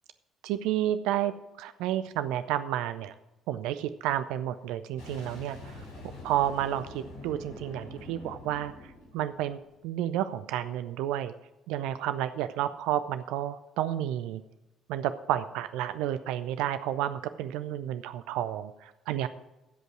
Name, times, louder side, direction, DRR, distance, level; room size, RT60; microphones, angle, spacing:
voice 1, 0.4-1.3 1.6-3.1 3.5-5.8 6.2-9.6 9.8-11.3 11.7-14.4 14.9-19.3, right 12 dB, 65° right, 12 dB, 0.4 m, -31 dB
Boom, 5.0-9.8, left 2 dB, 80° left, 4.3 m, -45 dB
15.5 x 5.3 x 6.0 m, 1.0 s
figure-of-eight pair, 50°, 0 cm